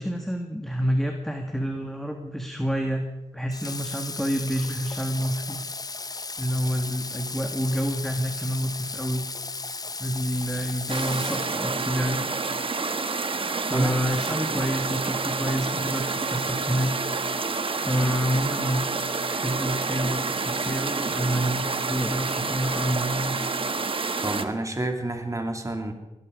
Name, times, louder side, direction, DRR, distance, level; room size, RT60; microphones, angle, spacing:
voice 1, 0.0-3.0 3.3-5.6 6.4-9.3 10.0-12.3 13.6-17.0 17.7-18.9 19.3-23.4, equal, 5° left, 4 dB, 1.7 m, -28 dB
Water / Water tap faucet, 3.5-12.0, left 3 dB, 30° left, 0.6 m, -35 dB
sound 1, 10.9-24.4, right 4 dB, 50° right, 1.1 m, -28 dB
voice 2, 24.2-25.9, right 1 dB, 25° right, 4 dB, 2.6 m, -29 dB
21.5 x 12.5 x 5.1 m, 1.1 s
cardioid pair, 60°, 12 cm